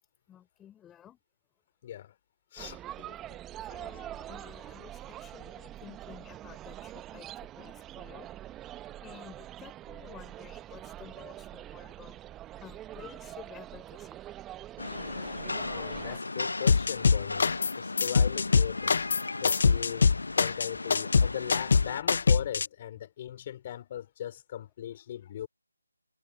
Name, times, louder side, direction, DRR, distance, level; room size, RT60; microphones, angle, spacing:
voice 1, 0.3-1.2 3.6-8.3 9.0-12.2 12.6-14.2, left 10 dB, 10° left, 4.5 m, -52 dB
voice 2, 1.8-2.1 2.5-3.4 15.7-19.0 19.4-20.1 20.4-25.5, left 11 dB, 25° left, 4.0 m, -39 dB
sound 1, 2.6-16.2, right 13 dB, 10° right, 0.7 m, -44 dB
Rain, 14.8-22.0, left 3 dB, 75° left, 0.8 m, -37 dB
sound 2, 16.7-17.7 18.0-22.7, left 5 dB, 50° left, 0.5 m, -23 dB
figure-of-eight pair, 160°, 0 cm